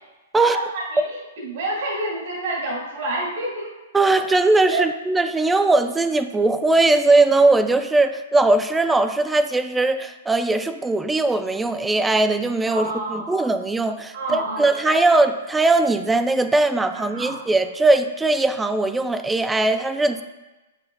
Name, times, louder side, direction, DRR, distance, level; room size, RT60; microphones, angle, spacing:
voice 1, 0.4-3.8 4.7-4.9 12.7-13.4 14.1-15.0 16.9-17.4, right 2 dB, 60° right, -5 dB, 1.9 m, -28 dB
voice 2, 3.9-20.2, right 2 dB, 5° right, 9 dB, 0.4 m, -19 dB
7.8 x 5.8 x 2.3 m, 1.1 s
hypercardioid pair, 145°, 0 cm